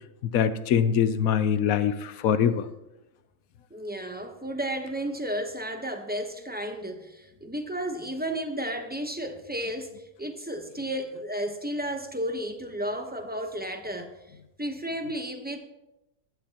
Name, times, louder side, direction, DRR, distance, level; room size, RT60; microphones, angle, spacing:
voice 1, 0.3-2.6, left 8 dB, 70° left, 1.0 m, -23 dB
voice 2, 3.7-14.1 14.6-15.6, right 1 dB, 10° right, 0.6 m, -33 dB
16.0 x 11.5 x 2.9 m
omnidirectional pair, 1.7 m